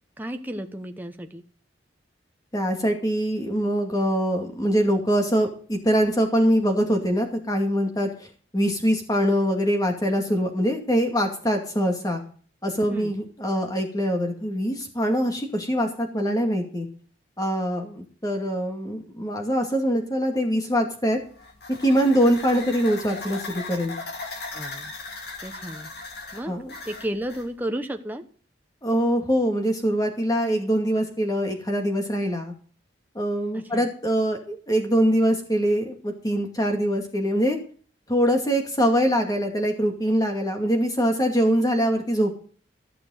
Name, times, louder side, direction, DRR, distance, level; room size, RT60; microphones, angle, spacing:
voice 1, 0.2-1.4 12.9-13.2 24.5-24.9 25.4-25.9 26.3-26.6 26.9-28.2 33.5-33.9, right 1 dB, 10° right, 6 dB, 0.9 m, -33 dB
voice 2, 2.5-8.3 8.5-12.2 12.6-16.9 17.4-21.2 21.8-23.9 26.5-26.7 28.8-32.5 33.1-37.6 38.1-42.4, equal, 20° left, 3 dB, 2.3 m, -23 dB
sound 1, 21.2-27.5, left 3 dB, 55° left, 2.2 m, -38 dB
14.5 x 6.8 x 6.4 m, 0.44 s
head